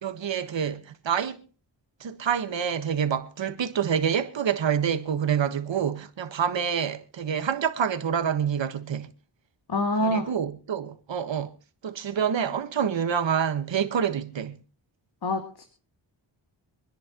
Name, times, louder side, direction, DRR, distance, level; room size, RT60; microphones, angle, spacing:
voice 1, 0.0-1.4 2.0-9.1 10.0-11.5 11.8-14.6, right 8 dB, 80° right, 1.5 m, -27 dB
voice 2, 9.7-10.3 15.2-15.7, left 1 dB, 55° left, 2.5 m, -26 dB
26.5 x 10.5 x 3.0 m
wide cardioid pair, 80°, 44 cm